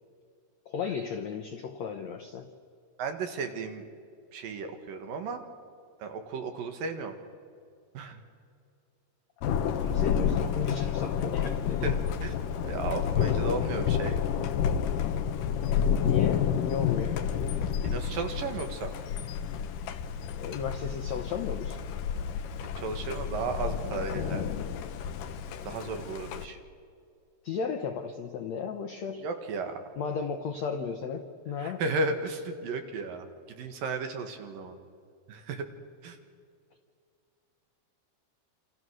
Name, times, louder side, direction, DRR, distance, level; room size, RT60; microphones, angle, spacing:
voice 1, 0.6-2.5 9.4-11.9 16.0-17.4 20.3-21.8 27.4-29.3 30.0-31.8, left 6 dB, 85° left, 7 dB, 1.5 m, -35 dB
voice 2, 3.0-3.8 4.3-5.4 6.0-7.2 7.9-8.2 11.8-12.0 12.2-12.3 12.7-14.2 17.8-18.9 22.8-24.4 25.7-26.6 29.2-29.7 31.6-33.3 33.6-34.8 35.3-35.6 36.0-36.2, right 4 dB, 65° right, 6 dB, 3.1 m, -34 dB
Thunder, 9.4-26.5, left 8 dB, 70° left, 2.3 m, -30 dB
28.5 x 27.5 x 6.3 m, 2.3 s
omnidirectional pair, 4.7 m